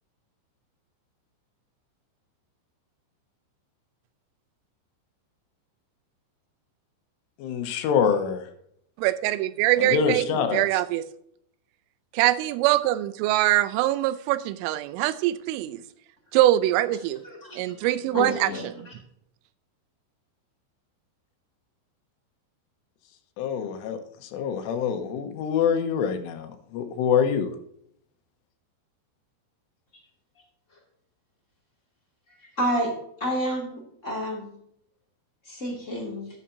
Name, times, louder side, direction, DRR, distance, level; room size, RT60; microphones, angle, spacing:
voice 1, 7.4-8.5 9.8-10.7 23.4-27.6, left 7 dB, 90° left, 7 dB, 3.6 m, -25 dB
voice 2, 9.0-10.3 10.5-11.0 12.1-15.8 16.3-17.2 17.6-18.9, right 15 dB, 90° right, 14 dB, 3.2 m, -23 dB
voice 3, 17.2-17.6 18.1-18.9 32.6-32.9 33.2-34.5 35.5-36.3, equal, 25° left, -2 dB, 1.7 m, -29 dB
13.5 x 9.9 x 2.8 m, 0.69 s
omnidirectional pair, 5.6 m